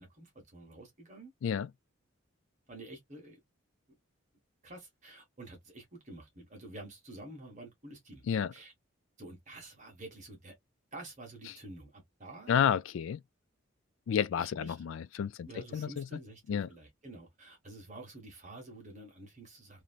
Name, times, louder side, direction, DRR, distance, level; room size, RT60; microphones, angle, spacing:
voice 1, 0.0-1.3 2.7-3.4 4.6-8.2 8.5-8.7 9.2-10.5 10.9-12.6 14.4-14.8 15.4-19.8, right 2 dB, 35° right, 1.3 m, -49 dB
voice 2, 12.5-13.2 14.1-16.1 16.5-16.7, left 8 dB, 75° left, 0.3 m, -31 dB
3.0 x 2.7 x 2.4 m
head